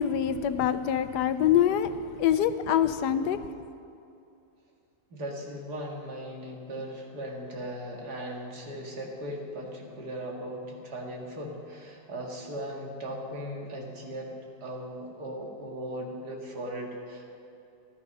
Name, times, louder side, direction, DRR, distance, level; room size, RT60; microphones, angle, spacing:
voice 1, 0.0-1.9 2.2-3.4, left 9 dB, 90° left, 12 dB, 1.3 m, -24 dB
voice 2, 5.1-14.3 14.6-17.2, equal, 75° right, -1 dB, 2.6 m, -38 dB
14.5 x 13.0 x 5.5 m, 2.7 s
omnidirectional pair, 1.7 m